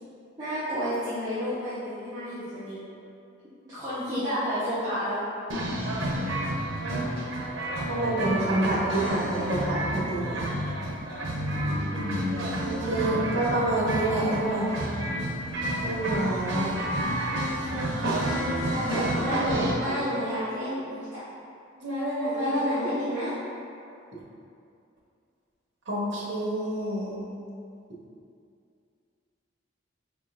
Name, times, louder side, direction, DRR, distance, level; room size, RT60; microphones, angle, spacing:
voice 1, 0.4-2.8 3.6-5.2 17.9-21.2 22.2-23.3, equal, 20° right, -15 dB, 1.0 m, -31 dB
sound 1, 5.5-19.7, right 1 dB, 75° right, 0.7 m, -30 dB
voice 2, 7.9-10.4 11.9-12.3 12.6-14.8 15.8-16.7 17.3-18.4 18.7-20.0 21.8-22.9 25.9-27.2, right 1 dB, 60° right, -6 dB, 1.0 m, -29 dB
5.0 x 3.7 x 2.5 m, 2.5 s
head